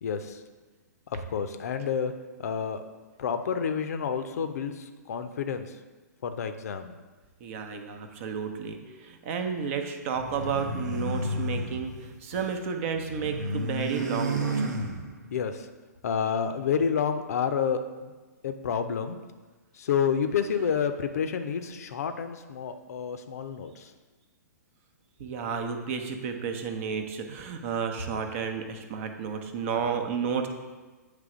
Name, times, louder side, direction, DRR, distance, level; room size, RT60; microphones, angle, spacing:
voice 1, 0.0-0.4 1.1-2.1 2.4-2.8 3.2-5.7 6.2-6.9 15.3-15.7 16.0-18.1 18.4-19.2 19.7-23.9, left 7 dB, 60° left, 8 dB, 0.6 m, -29 dB
voice 2, 7.4-14.6 25.2-30.5, right 6 dB, 45° right, 5 dB, 0.8 m, -32 dB
sound 1, 10.2-12.6 12.9-15.4, right 1 dB, 80° right, 0.9 m, -32 dB
8.4 x 3.3 x 4.9 m, 1.3 s
figure-of-eight pair, 120°, 9 cm